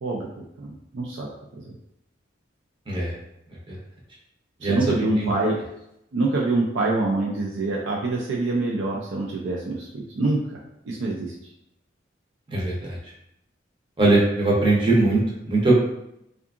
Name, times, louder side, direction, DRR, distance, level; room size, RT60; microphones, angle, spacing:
voice 1, 0.6-1.3 1.6-1.7 4.6-5.6 6.1-10.6 10.8-11.3, right 2 dB, 80° right, -2 dB, 0.4 m, -25 dB
voice 2, 4.6-5.3 12.5-13.0 14.0-15.8, right 2 dB, 25° right, -4 dB, 0.6 m, -21 dB
2.7 x 2.4 x 2.4 m, 0.80 s
head